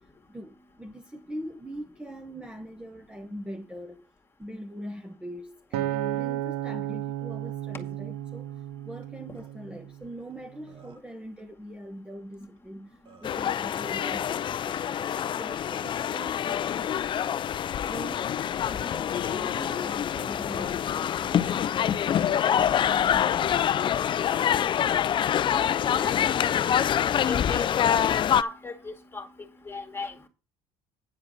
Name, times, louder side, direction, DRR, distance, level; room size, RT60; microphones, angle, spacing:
voice 1, 0.3-4.0 4.4-16.9 17.7-18.3 18.7-24.0 26.1-26.3 27.2-27.4, equal, 5° right, 1.0 m, -42 dB
Acoustic guitar, 5.7-10.1 10.7-10.9, right 13 dB, 85° right, 1.0 m, -33 dB
Burping eructation, 9.0-9.1 9.3-9.5 10.3-10.4 10.7-11.2 12.6-12.7 13.0-13.4, right 4 dB, 35° right, 2.2 m, -55 dB
sound 1, 13.2-28.4, left 9 dB, 35° left, 0.4 m, -26 dB
voice 2, 27.3-28.1 28.4-29.3 29.7-30.3, left 3 dB, 15° left, 2.1 m, -36 dB
9.6 x 4.7 x 7.5 m
supercardioid pair, 110°, 15 cm